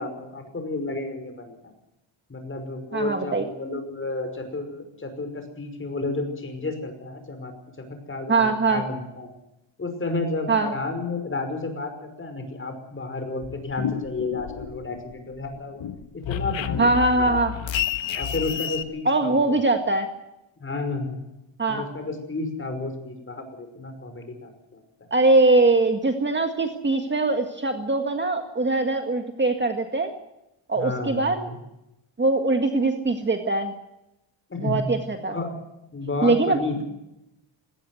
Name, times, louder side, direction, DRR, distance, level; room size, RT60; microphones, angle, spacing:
voice 1, 0.0-1.7 2.3-7.5 7.8-9.3 9.8-15.8 16.1-17.4 18.1-19.6 20.6-21.2 21.7-24.8 30.7-31.6 34.5-34.9 35.3-35.6 35.9-36.8, left 3 dB, 25° left, 7 dB, 5.5 m, -31 dB
voice 2, 2.9-3.5 8.3-8.8 10.5-10.7 16.8-17.5 19.1-20.1 21.6-21.9 25.1-30.1 30.7-31.5 32.2-33.7 34.6-35.4 36.2-36.6, right 2 dB, 25° right, 5 dB, 1.8 m, -22 dB
sound 1, 13.4-15.1 15.4-18.8, left 9 dB, 70° left, 1.6 m, -30 dB
20.5 x 18.0 x 8.0 m, 0.89 s
wide cardioid pair, 140°, 47 cm